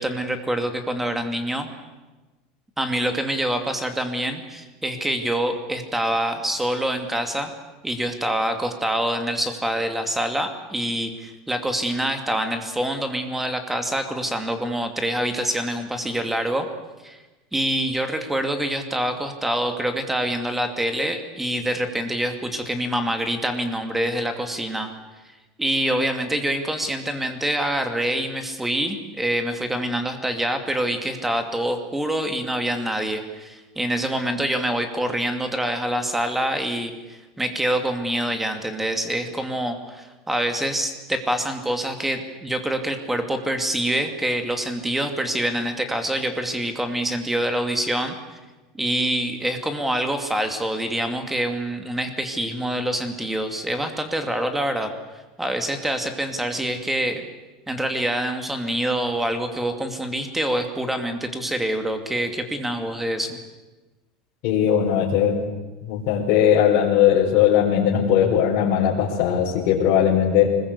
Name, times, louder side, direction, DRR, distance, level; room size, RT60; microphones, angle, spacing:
voice 1, 0.0-1.7 2.8-7.5 7.8-16.7 17.0-17.2 17.5-24.9 25.6-48.4 48.7-54.9 55.4-57.2 57.7-63.4, right 1 dB, 5° right, 6 dB, 2.7 m, -26 dB
voice 2, 64.4-65.4 65.8-70.5, left 9 dB, 55° left, -5 dB, 4.9 m, -19 dB
25.0 x 21.0 x 8.3 m, 1.2 s
supercardioid pair, 145°, 3 cm